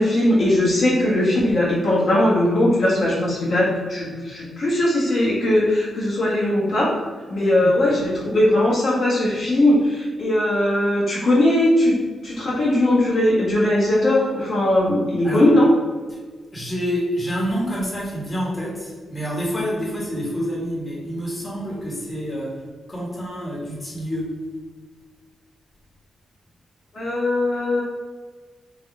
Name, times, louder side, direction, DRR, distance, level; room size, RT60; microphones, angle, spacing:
voice 1, 0.0-6.9 7.3-12.0 12.2-15.7 26.9-27.8, left 1 dB, 55° left, -7 dB, 1.4 m, -19 dB
voice 2, 7.4-7.7 15.2-15.5 16.1-16.2 16.5-24.4, equal, 25° left, -5 dB, 1.5 m, -28 dB
3.7 x 3.0 x 3.6 m, 1.4 s
cardioid pair, 85°, 0 cm